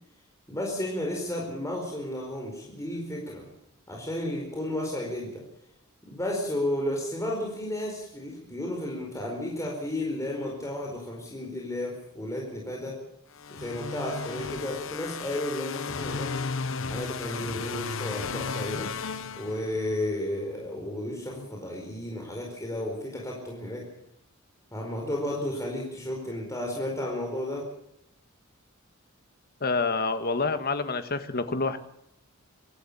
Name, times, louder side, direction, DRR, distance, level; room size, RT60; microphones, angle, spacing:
voice 1, 0.5-3.4 3.9-5.4 6.0-12.9 13.5-16.3 16.9-18.9 19.4-23.8 24.7-27.6, left 1 dB, 15° left, -1 dB, 4.6 m, -33 dB
sound 1, 13.4-20.0, left 5 dB, 65° left, 0.9 m, -34 dB
voice 2, 29.6-31.8, left 3 dB, 50° left, 10 dB, 1.6 m, -27 dB
24.5 x 13.0 x 8.5 m, 0.77 s
head